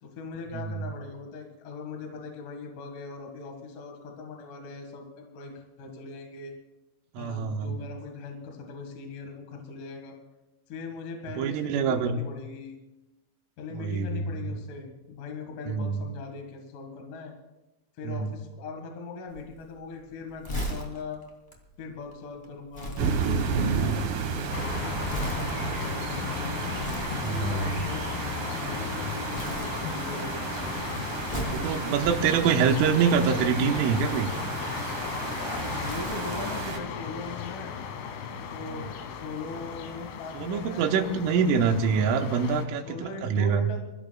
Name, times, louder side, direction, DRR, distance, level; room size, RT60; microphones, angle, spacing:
voice 1, 0.0-6.5 7.2-10.1 10.7-12.7 13.6-17.3 18.0-21.2 21.8-26.5 27.3-28.1 28.4-28.8 29.3-30.7 31.5-32.3 35.7-37.8 38.5-42.1 42.8-43.8, left 4 dB, 55° left, 2 dB, 2.7 m, -40 dB
voice 2, 0.5-0.9 7.2-7.8 11.4-12.2 13.7-14.4 15.7-16.0 18.0-18.4 23.7-24.0 27.2-27.9 31.5-34.3 38.7-38.9 40.4-43.7, right 6 dB, 90° right, 5 dB, 3.6 m, -26 dB
Crumpling crinkling, 19.3-28.9 29.3-30.3 30.5-33.3 34.0-36.6 36.9-37.1, equal, 15° left, 1.1 m, -40 dB
sound 1, 23.0-36.8, right 5 dB, 60° right, 2.6 m, -33 dB
sound 2, 24.5-42.7, left 7 dB, 90° left, 3.9 m, -36 dB
27.0 x 15.5 x 2.3 m, 1.0 s
omnidirectional pair, 5.6 m